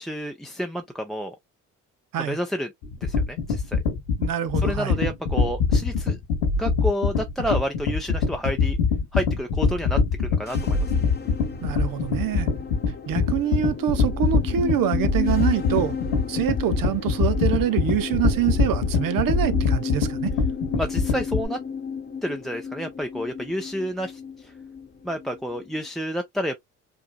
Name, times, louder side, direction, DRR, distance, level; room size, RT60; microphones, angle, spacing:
voice 1, 0.0-1.4 2.2-2.7 3.0-3.8 4.6-6.2 6.6-8.8 9.1-11.1 20.8-21.6 22.2-24.5 25.0-26.6, equal, ahead, 0.6 m, -30 dB
sound 1, 2.8-21.4, left 5 dB, 85° left, 1.7 m, -23 dB
voice 2, 4.2-5.0 11.6-12.5 13.1-16.0 16.3-20.3, right 11 dB, 60° right, 0.8 m, -25 dB
sound 2, 10.4-25.9, left 6 dB, 25° left, 1.0 m, -34 dB
4.9 x 2.6 x 2.3 m
supercardioid pair, 60°, 38 cm